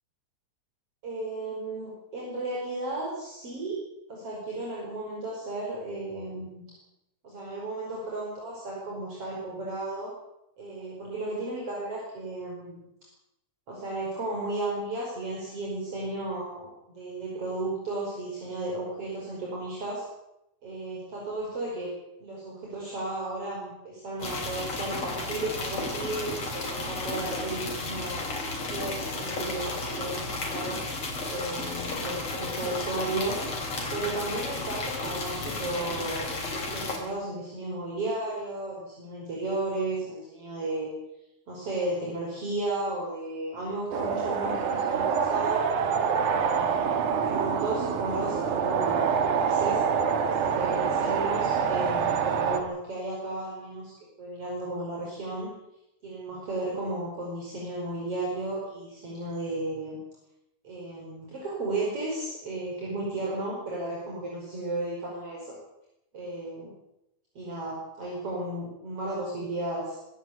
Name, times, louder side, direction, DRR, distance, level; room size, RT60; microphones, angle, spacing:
voice 1, 1.0-3.8 4.1-6.6 7.2-10.1 10.6-12.8 13.7-16.7 17.0-20.0 20.6-21.9 22.2-28.2 28.7-30.8 31.3-33.4 33.9-40.9 41.5-45.7 46.3-49.8 50.4-53.9 54.2-55.5 56.0-60.0 60.6-65.6 66.1-66.7 67.4-70.0, right 2 dB, 50° right, -3 dB, 6.0 m, -34 dB
sound 1, 24.2-37.0, left 2 dB, 55° left, 5.0 m, -33 dB
sound 2, 43.9-52.6, right 6 dB, 90° right, 3.1 m, -26 dB
24.0 x 13.0 x 8.5 m, 0.86 s
omnidirectional pair, 3.4 m